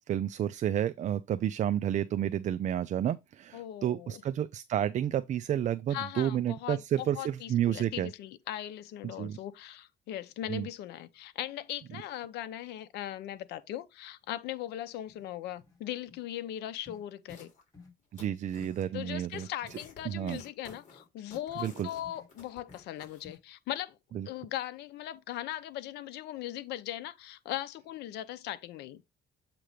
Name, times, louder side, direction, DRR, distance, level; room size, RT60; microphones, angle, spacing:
voice 1, 0.1-8.1 9.2-9.4 10.5-10.7 18.1-19.5 20.1-20.4 21.6-21.9 24.1-24.3, right 10 dB, 45° right, 0.4 m, -30 dB
voice 2, 3.5-4.2 5.9-17.5 18.9-24.0 24.3-29.0, left 12 dB, 80° left, 0.7 m, -39 dB
sound 1, 14.6-14.7 15.1-15.3 15.6-15.8 16.1-16.2 16.8-17.0 17.3-17.5 17.7-17.9 18.2-18.3 18.6-19.8 20.1-20.3 20.7-20.8 21.5-21.6 22.0-22.3 22.7-22.8 23.2-23.4, left 4 dB, 20° left, 3.3 m, -54 dB
sound 2, 17.3-17.7 18.0-18.8 19.2-23.2, left 4 dB, 45° left, 3.2 m, -53 dB
7.7 x 3.0 x 5.0 m
cardioid pair, 110°, 17 cm